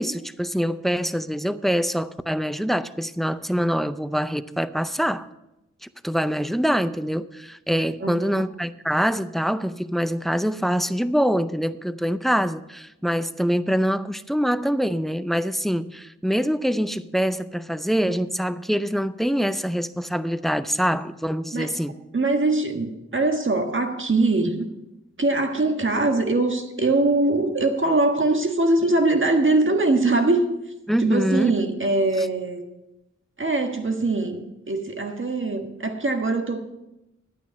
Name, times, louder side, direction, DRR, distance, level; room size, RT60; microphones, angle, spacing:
voice 1, 0.0-5.3 5.8-21.9 30.9-31.5 32.2-32.3, equal, ahead, 13 dB, 0.5 m, -24 dB
voice 2, 8.0-8.4 21.5-21.7 22.1-24.7 25.2-30.5 31.0-32.6 33.4-36.7, right 2 dB, 45° right, 5 dB, 1.5 m, -22 dB
11.5 x 9.1 x 5.3 m, 0.94 s
wide cardioid pair, 60°, 29 cm